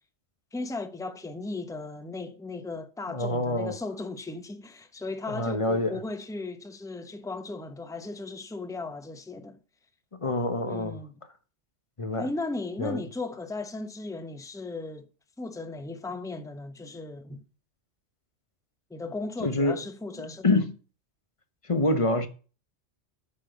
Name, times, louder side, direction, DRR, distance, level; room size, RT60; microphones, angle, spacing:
voice 1, 0.5-9.6 10.6-11.1 12.2-15.1 15.4-17.4 18.9-20.6, left 3 dB, 5° left, 0.8 m, -36 dB
voice 2, 3.1-3.8 5.3-6.0 10.2-11.0 12.0-12.3 12.8-13.0 19.4-19.8 20.4-20.7 21.7-22.3, left 2 dB, 30° left, 1.0 m, -26 dB
8.6 x 6.1 x 8.1 m
omnidirectional pair, 1.2 m